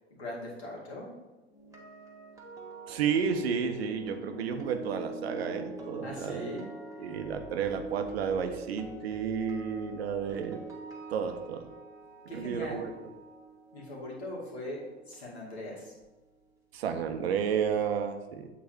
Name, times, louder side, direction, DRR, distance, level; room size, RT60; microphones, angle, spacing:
voice 1, 0.2-1.1 6.0-6.7 7.0-7.2 12.3-12.9 13.7-15.9, left 1 dB, 80° left, -4 dB, 2.2 m, -40 dB
sound 1, 1.5-15.6 15.8-16.1, right 2 dB, 10° right, 1.7 m, -45 dB
voice 2, 2.9-6.4 7.0-10.6 11.1-11.7 12.3-12.9 16.7-18.5, right 7 dB, 70° right, 6 dB, 0.9 m, -31 dB
8.4 x 4.0 x 4.5 m, 1.1 s
figure-of-eight pair, 80°, 32 cm